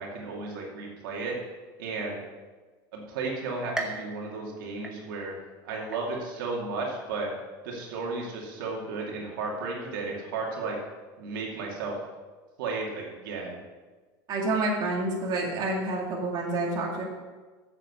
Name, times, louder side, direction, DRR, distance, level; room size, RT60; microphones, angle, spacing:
voice 1, 0.0-1.4 1.8-2.2 2.9-5.3 5.6-7.3 7.6-10.8 11.2-11.9 12.6-13.6, right 3 dB, 85° right, -2 dB, 2.5 m, -34 dB
sound 1, 3.8-5.5 5.9-6.5 7.0-7.1 8.1-8.2, right 2 dB, 5° right, 1.2 m, -38 dB
voice 2, 14.3-17.0, right 2 dB, 40° right, -2 dB, 2.3 m, -28 dB
8.2 x 7.3 x 6.7 m, 1.3 s
supercardioid pair, 130°, 11 cm